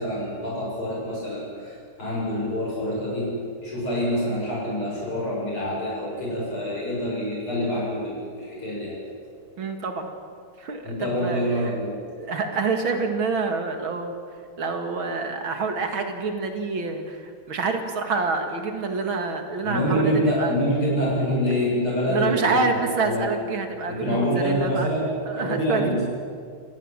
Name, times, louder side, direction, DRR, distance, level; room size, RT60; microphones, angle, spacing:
voice 1, 0.0-9.0 10.8-12.0 19.6-23.4 23.9-26.0, equal, 80° left, -5 dB, 8.0 m, -26 dB
voice 2, 9.6-10.1 10.6-11.7 12.2-14.2 14.6-20.5 22.1-24.9 25.3-26.0, right 4 dB, 70° right, 5 dB, 2.8 m, -27 dB
28.5 x 17.5 x 7.6 m, 2.1 s
omnidirectional pair, 2.4 m